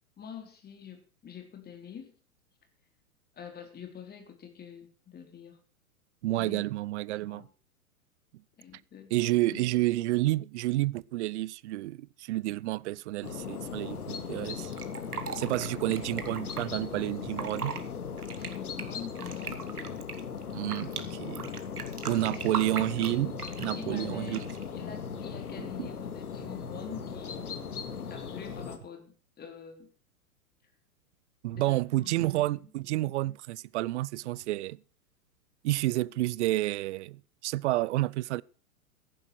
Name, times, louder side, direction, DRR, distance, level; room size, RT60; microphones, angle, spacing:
voice 1, 0.2-2.1 3.4-5.6 6.4-6.6 7.2-7.5 8.6-9.1 9.5-9.7 18.3-19.6 22.1-22.5 23.8-24.5 24.7-27.5 28.0-29.9 31.5-32.3 32.6-32.7, left 8 dB, 20° left, 4.0 m, -46 dB
voice 2, 6.2-7.4 9.1-14.7 15.3-17.8 20.5-21.5 22.0-24.4 25.8-25.9 31.4-34.8 35.6-38.4, right 17 dB, 50° right, 0.6 m, -30 dB
sound 1, 13.2-28.8, left 6 dB, 80° left, 2.2 m, -38 dB
Fill (with liquid), 14.6-16.6 17.2-17.8 18.2-21.0 21.4-23.8 24.3-24.7, right 6 dB, 85° right, 2.2 m, -38 dB
15.0 x 11.0 x 6.1 m
hypercardioid pair, 110°, 44 cm